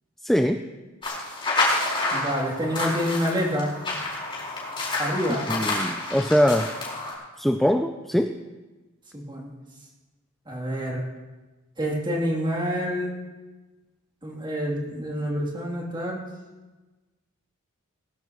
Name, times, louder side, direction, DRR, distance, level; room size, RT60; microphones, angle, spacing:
voice 1, 0.2-0.6 5.5-6.7 7.4-8.4, equal, ahead, 6 dB, 0.4 m, -22 dB
sound 1, 1.0-7.1, left 2 dB, 25° left, 4.5 m, -29 dB
voice 2, 2.1-3.7 5.0-5.5 9.1-9.5 10.5-11.0 11.8-13.1 14.2-16.2, equal, 25° right, -2 dB, 3.1 m, -27 dB
19.5 x 15.5 x 3.1 m, 1.2 s
head